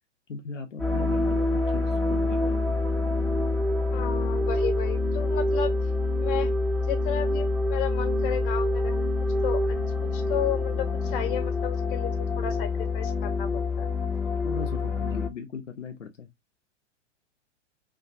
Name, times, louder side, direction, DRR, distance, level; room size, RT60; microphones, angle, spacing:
voice 1, 0.3-2.7 14.4-16.3, left 5 dB, 85° left, 0.6 m, -38 dB
sound 1, 0.8-15.3, left 2 dB, 5° left, 0.4 m, -26 dB
voice 2, 3.9-5.7 6.2-6.5 6.8-9.1 9.4-9.8 10.1-14.0, left 10 dB, 45° left, 0.9 m, -33 dB
2.5 x 2.3 x 2.4 m
figure-of-eight pair, 105°, 36 cm